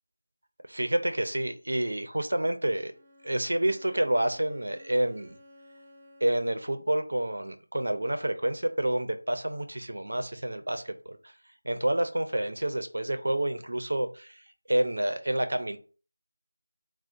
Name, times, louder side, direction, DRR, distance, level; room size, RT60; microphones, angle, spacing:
voice 1, 0.7-2.9 3.2-5.4 6.2-11.3 11.6-15.8, right 1 dB, 80° right, 8 dB, 0.6 m, -29 dB
Bowed string instrument, 2.9-6.7, left 1 dB, 25° right, 0.6 m, -55 dB
3.6 x 2.2 x 4.4 m, 0.38 s
figure-of-eight pair, 170°, 0 cm